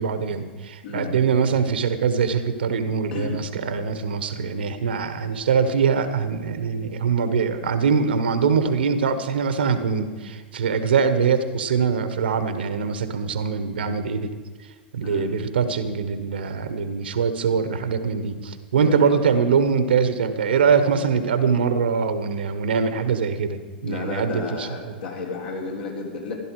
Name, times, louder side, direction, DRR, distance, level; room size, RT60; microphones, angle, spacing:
voice 1, 0.0-14.3 14.9-24.9, right 6 dB, 75° right, 10 dB, 1.3 m, -23 dB
voice 2, 3.1-3.4 15.0-15.3 18.7-19.2 23.8-26.3, left 4 dB, 70° left, -1 dB, 3.9 m, -32 dB
15.5 x 12.0 x 4.8 m, 1.4 s
hypercardioid pair, 100°, 6 cm